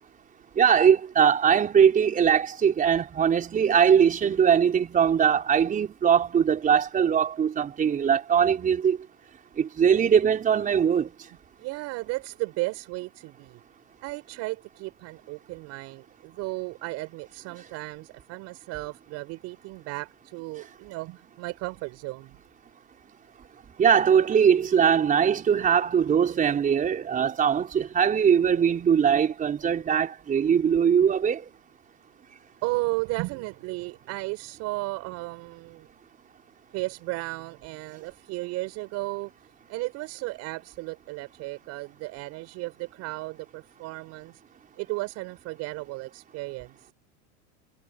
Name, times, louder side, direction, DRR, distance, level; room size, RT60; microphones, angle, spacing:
voice 1, 0.6-9.0 9.6-11.1 23.8-31.4, right 7 dB, 25° right, 4.6 m, -21 dB
voice 2, 11.6-13.6 14.0-22.4 32.6-35.9 36.7-39.3 39.7-44.4 44.8-46.8, right 22 dB, 55° right, 7.0 m, -34 dB
supercardioid pair, 130°, 31 cm